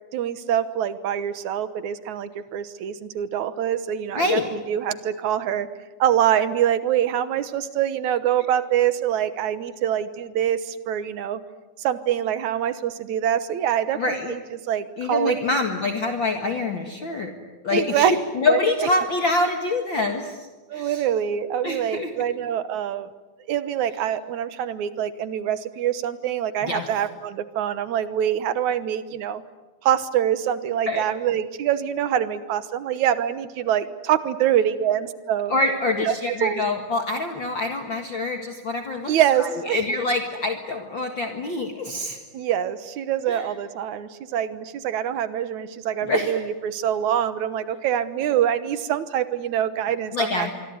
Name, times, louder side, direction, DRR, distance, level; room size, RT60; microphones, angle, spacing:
voice 1, 0.1-5.7 6.0-11.4 11.8-14.4 14.7-15.4 17.7-18.1 18.5-18.9 20.7-23.1 23.5-29.4 29.8-35.5 36.0-36.1 36.4-36.6 39.1-39.8 42.3-50.5, right 10 dB, 75° right, 13 dB, 2.5 m, -25 dB
voice 2, 4.2-4.5 13.9-14.3 15.0-17.3 17.6-21.0 21.6-22.1 26.6-26.9 30.9-31.0 35.5-42.2 43.3-43.4 46.0-46.3 50.1-50.5, left 2 dB, 45° left, 4 dB, 2.3 m, -25 dB
25.5 x 24.0 x 9.5 m, 1.2 s
omnidirectional pair, 3.6 m